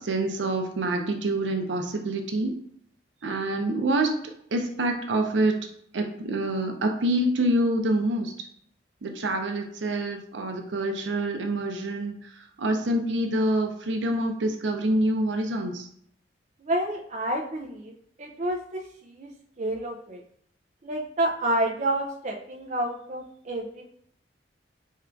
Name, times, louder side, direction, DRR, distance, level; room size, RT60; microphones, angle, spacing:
voice 1, 0.0-2.6 3.2-4.2 4.5-5.7 5.9-8.3 9.0-12.1 12.6-15.9, right 1 dB, 85° right, 4 dB, 0.6 m, -26 dB
voice 2, 16.6-17.9 18.2-18.8 19.2-19.3 19.6-20.2 20.8-23.9, right 1 dB, 40° right, 3 dB, 0.5 m, -29 dB
3.6 x 2.4 x 4.4 m, 0.65 s
head